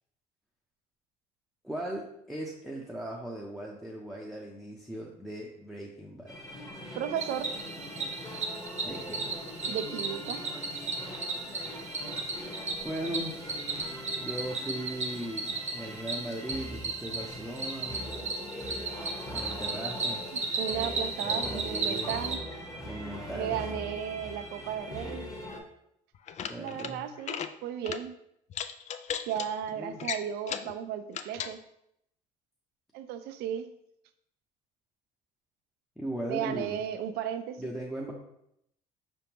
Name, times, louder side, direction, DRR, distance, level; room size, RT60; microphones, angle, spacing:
voice 1, 1.6-6.4 8.8-9.3 12.8-13.6 14.2-18.0 19.3-20.2 21.2-22.1 22.8-23.6 26.4-27.0 29.7-30.0 36.0-36.8 37.6-38.1, right 1 dB, ahead, -3 dB, 0.7 m, -38 dB
Public singing, 6.3-25.6, equal, 20° left, 1.3 m, -41 dB
voice 2, 6.9-7.5 9.7-10.4 20.3-22.4 23.3-25.3 26.6-28.1 29.3-31.6 32.9-33.7 36.3-37.7, right 9 dB, 75° right, 10 dB, 0.5 m, -35 dB
Cricket, 7.2-22.4, right 3 dB, 40° right, 0.9 m, -35 dB
sound 1, 26.1-26.9 27.2-27.5 27.8-28.0 28.5-29.5 30.0-30.7 31.1-31.5, left 8 dB, 45° left, 0.4 m, -36 dB
4.9 x 3.5 x 3.0 m, 0.77 s
supercardioid pair, 75°, 17 cm